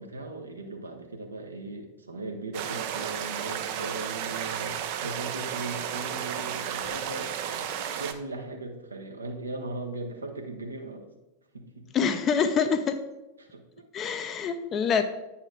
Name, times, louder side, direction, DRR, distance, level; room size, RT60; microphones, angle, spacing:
voice 1, 0.0-7.7 8.0-11.1 11.5-11.9 13.4-13.8, right 2 dB, 75° right, 3 dB, 0.9 m, -38 dB
sound 1, 2.5-8.1, right 9 dB, 45° right, 0.5 m, -33 dB
voice 2, 11.9-13.0 13.9-15.0, left 6 dB, 30° left, 9 dB, 0.5 m, -25 dB
8.7 x 4.3 x 3.7 m, 1.0 s
figure-of-eight pair, 90°, 0 cm